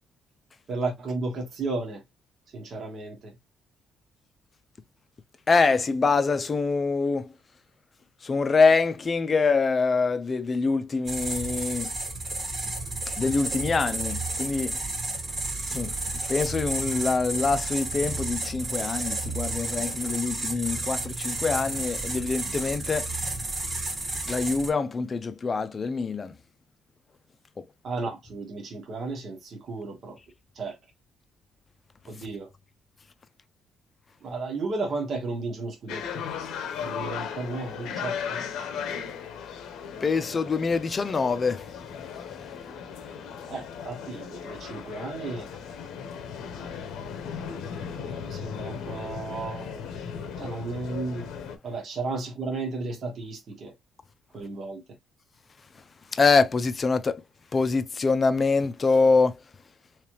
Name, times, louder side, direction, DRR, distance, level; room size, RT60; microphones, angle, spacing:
voice 1, 0.7-2.0 2.5-3.3 27.8-30.2 30.5-30.8 32.1-32.5 34.2-36.3 36.8-38.4 43.5-45.5 48.0-49.8 50.4-51.3 51.6-53.7 54.3-54.8, right 3 dB, 50° right, 1.4 m, -33 dB
voice 2, 5.5-7.3 8.2-11.9 13.2-14.8 15.7-15.9 16.3-23.1 24.3-26.3 40.0-41.7 56.1-57.2 57.5-59.4, left 4 dB, 35° left, 0.5 m, -24 dB
sound 1, 11.1-24.7, right 2 dB, 35° right, 1.4 m, -31 dB
sound 2, 35.9-51.6, left 7 dB, 85° left, 0.8 m, -37 dB
3.4 x 3.2 x 2.9 m
cardioid pair, 105°, 0 cm